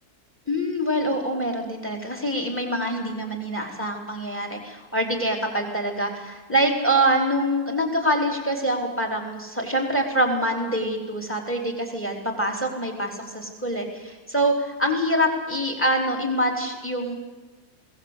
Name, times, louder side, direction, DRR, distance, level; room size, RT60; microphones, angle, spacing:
voice 1, 0.5-17.1, right 1 dB, 5° left, 3 dB, 3.5 m, -25 dB
21.5 x 17.5 x 8.2 m, 1.2 s
omnidirectional pair, 1.7 m